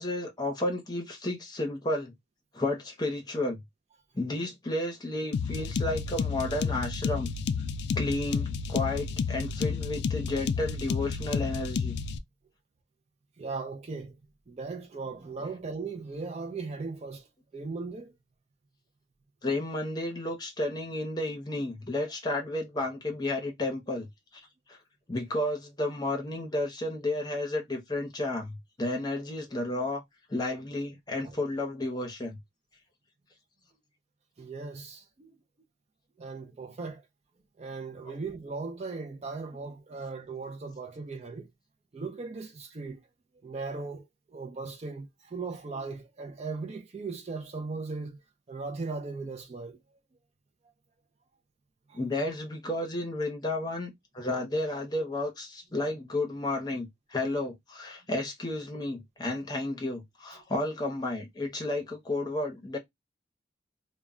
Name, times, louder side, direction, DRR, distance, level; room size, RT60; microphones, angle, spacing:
voice 1, 0.0-2.1 2.5-3.6 4.1-7.4 8.0-12.0 19.4-24.1 24.3-24.8 25.1-30.0 30.3-32.4 38.1-38.2 51.9-62.8, left 2 dB, 20° left, 0.7 m, -32 dB
sound 1, 5.3-12.2, left 5 dB, 60° left, 0.3 m, -31 dB
voice 2, 13.4-14.2 14.5-17.3 17.5-18.2 31.2-31.4 34.4-35.4 36.2-37.1 37.6-41.5 41.9-43.1 43.4-48.2 48.5-50.0 51.9-52.0 60.3-60.4, right 4 dB, 35° right, 0.3 m, -38 dB
2.1 x 2.1 x 3.5 m
head